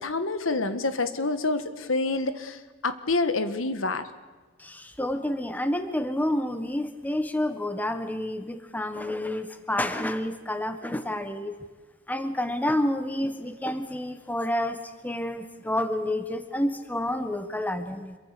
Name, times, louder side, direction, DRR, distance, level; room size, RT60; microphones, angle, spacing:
voice 1, 0.0-4.1, left 3 dB, 80° left, 10 dB, 1.5 m, -27 dB
voice 2, 4.6-11.5 12.1-18.2, left 1 dB, 10° left, 9 dB, 1.4 m, -29 dB
26.5 x 23.0 x 6.8 m, 1.3 s
head